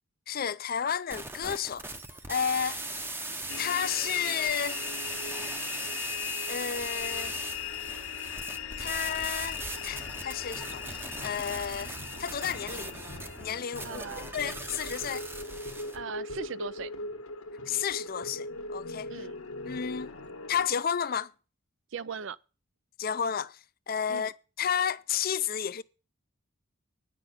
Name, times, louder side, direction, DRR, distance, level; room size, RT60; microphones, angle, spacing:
voice 1, 0.3-1.9 2.3-2.8 3.6-4.8 6.5-7.4 8.8-13.0 13.4-14.0 14.3-15.2 17.7-19.1 19.7-20.1 20.5-21.3 23.0-23.6 23.9-25.8, left 8 dB, 45° left, 0.5 m, -32 dB
sound 1, 1.1-16.0, right 2 dB, 10° right, 0.7 m, -39 dB
sound 2, 3.5-20.7, left 6 dB, 85° left, 1.5 m, -39 dB
sound 3, 6.7-13.6, right 1 dB, 90° right, 3.7 m, -49 dB
voice 2, 13.8-14.3 15.9-16.9 19.1-19.4 21.9-22.4 24.1-24.3, right 6 dB, 60° right, 0.5 m, -39 dB
9.9 x 6.1 x 8.0 m
head